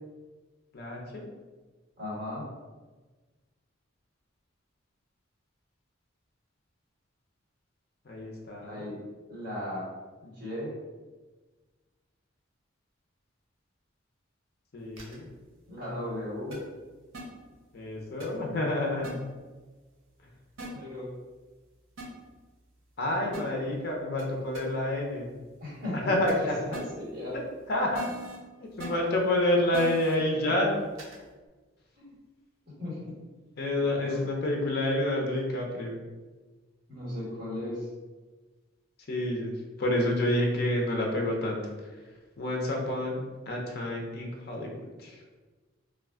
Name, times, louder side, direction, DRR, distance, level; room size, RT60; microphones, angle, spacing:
voice 1, 0.7-1.2 8.0-8.9 14.7-15.3 17.7-19.2 20.2-20.3 23.0-25.3 26.1-26.8 27.3-27.4 27.7-28.0 28.6-30.7 33.6-36.0 39.1-39.5 39.8-42.1 42.4-45.2, left 1 dB, 50° left, 0 dB, 0.5 m, -29 dB
voice 2, 2.0-2.5 8.6-8.9 9.3-9.8 10.2-10.7 15.7-16.6 20.7-21.1 25.6-26.0 26.4-27.3 32.0-32.1 32.6-33.2 33.8-34.2 36.9-37.9, left 1 dB, 45° right, -8 dB, 1.3 m, -37 dB
sound 1, 15.0-15.1 16.5-16.6 17.1-17.2 18.2-18.3 19.0-19.1 20.6-20.7 22.0-22.1 23.3-23.4 24.2-24.3 24.5-24.6 26.3-26.4 26.7-26.8 27.9-28.4 28.8-28.9 29.7-30.1 31.0-31.1, right 2 dB, 90° right, 0.7 m, -39 dB
2.4 x 2.3 x 3.4 m, 1.3 s
head